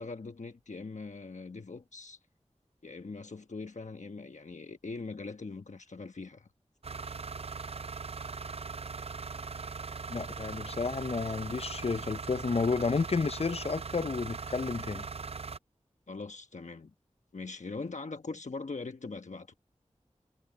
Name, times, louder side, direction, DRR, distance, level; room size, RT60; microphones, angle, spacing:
voice 1, 0.0-2.2 2.8-6.5 16.1-16.9 17.3-19.5, left 3 dB, 75° left, 1.1 m, -41 dB
sound 1, 6.8-15.6, right 5 dB, 55° right, 0.4 m, -40 dB
voice 2, 10.1-15.1, left 4 dB, 55° left, 0.5 m, -31 dB
wide cardioid pair, 50°, 12 cm